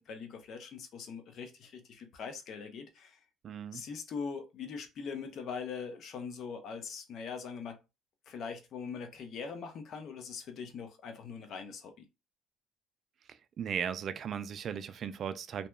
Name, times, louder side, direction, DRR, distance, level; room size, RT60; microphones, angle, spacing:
voice 1, 0.0-3.2 3.7-7.8 8.3-12.1, left 5 dB, 55° left, 0.6 m, -42 dB
voice 2, 3.4-3.8 13.6-15.7, right 7 dB, 45° right, 0.3 m, -36 dB
2.7 x 2.2 x 2.2 m
cardioid pair, 105°, 0 cm